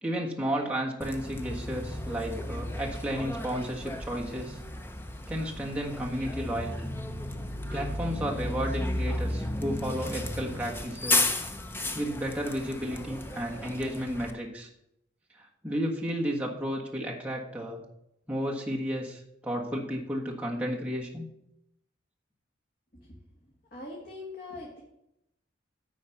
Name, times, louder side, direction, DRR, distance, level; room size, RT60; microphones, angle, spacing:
voice 1, 0.0-4.6 5.3-6.9 7.7-11.3 11.9-14.7 15.3-17.8 18.3-21.3, equal, 5° right, -2 dB, 1.4 m, -33 dB
Bus, 1.0-14.3, left 1 dB, 10° left, 0.6 m, -34 dB
voice 2, 23.7-24.8, left 2 dB, 50° left, -2 dB, 1.6 m, -42 dB
10.5 x 4.3 x 7.2 m, 0.81 s
head